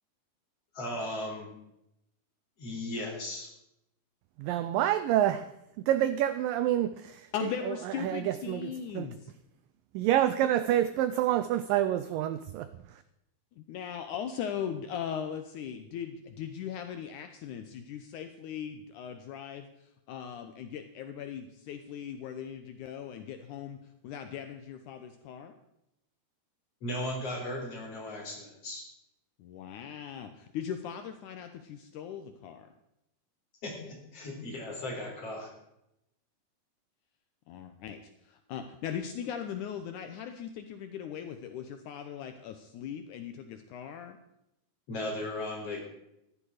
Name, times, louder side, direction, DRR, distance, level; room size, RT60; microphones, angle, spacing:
voice 1, 0.7-1.5 2.6-3.5 26.8-28.8 33.6-35.5 44.9-45.8, left 1 dB, 35° left, -1 dB, 4.8 m, -36 dB
voice 2, 4.4-5.5 5.8-7.3 7.7-9.1 9.9-12.7, right 12 dB, 90° right, 12 dB, 1.9 m, -28 dB
voice 3, 7.3-9.3 13.6-19.7 20.1-23.8 24.0-25.6 29.4-32.7 37.5-38.0 38.2-44.2, left 8 dB, 85° left, 8 dB, 1.7 m, -39 dB
14.5 x 13.0 x 4.9 m, 0.84 s
omnidirectional pair, 4.7 m